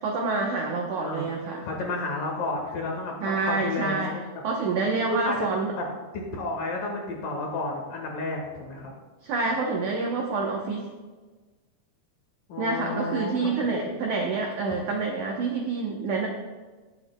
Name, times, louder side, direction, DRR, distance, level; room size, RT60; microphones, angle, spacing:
voice 1, 0.0-1.6 3.2-4.1 4.4-5.7 9.2-10.8 12.6-16.3, right 3 dB, 85° right, 0 dB, 1.7 m, -27 dB
voice 2, 0.9-1.3 1.6-4.2 5.1-5.4 5.8-5.9 6.1-8.9 12.5-13.9, left 2 dB, 65° left, 0 dB, 2.7 m, -31 dB
17.5 x 7.9 x 2.2 m, 1.3 s
omnidirectional pair, 4.8 m